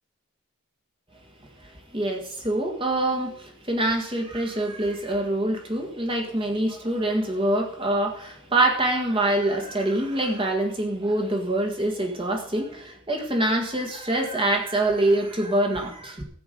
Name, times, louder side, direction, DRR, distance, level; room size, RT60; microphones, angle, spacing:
voice 1, 1.6-16.2, right 1 dB, 25° right, 2 dB, 1.7 m, -25 dB
14.0 x 8.4 x 5.3 m, 0.62 s
head